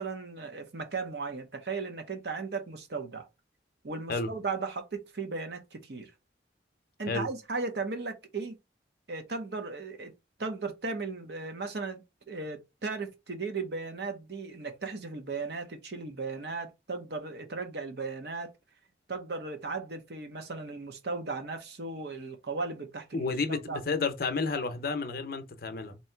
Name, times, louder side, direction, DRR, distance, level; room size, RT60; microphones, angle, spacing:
voice 1, 0.0-3.3 3.8-6.1 7.0-8.5 9.1-10.1 10.4-12.0 12.3-18.5 19.1-23.8, right 4 dB, 65° right, 0.8 m, -36 dB
voice 2, 23.1-26.0, left 4 dB, 55° left, 0.6 m, -31 dB
3.1 x 2.7 x 4.4 m
head